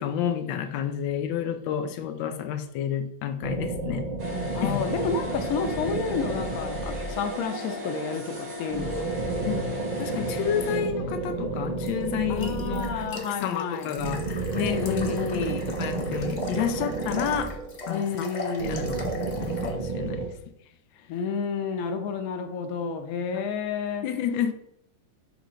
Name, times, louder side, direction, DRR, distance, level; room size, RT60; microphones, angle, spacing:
voice 1, 0.0-4.1 4.6-4.8 9.5-9.6 10.0-17.5 17.9-18.3 18.6-19.1 19.4-20.3 24.0-24.5, left 9 dB, 90° left, 1.4 m, -30 dB
sound 1, 3.4-7.6 8.7-13.3 14.0-18.0 18.6-20.3, right 3 dB, 90° right, 0.3 m, -31 dB
sound 2, 4.2-10.8, left 3 dB, 60° right, 2.2 m, -37 dB
voice 2, 4.5-9.1 12.3-13.9 14.5-15.6 17.9-18.9 21.1-24.1, left 5 dB, 60° left, 1.1 m, -30 dB
sound 3, 11.9-19.7, left 2 dB, 40° left, 0.6 m, -39 dB
6.8 x 3.0 x 5.0 m
omnidirectional pair, 2.0 m